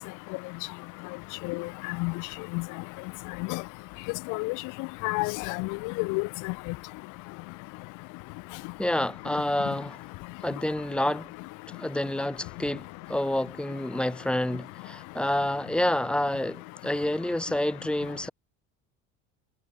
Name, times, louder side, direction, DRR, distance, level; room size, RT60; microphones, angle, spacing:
voice 1, 5.0-5.7 6.0-6.5, left 28 dB, 70° left, 1.3 m, -29 dB
voice 2, 8.8-10.0 10.4-11.3 11.7-18.3, left 1 dB, 5° left, 2.8 m, -28 dB
cardioid pair, 150°, 32 cm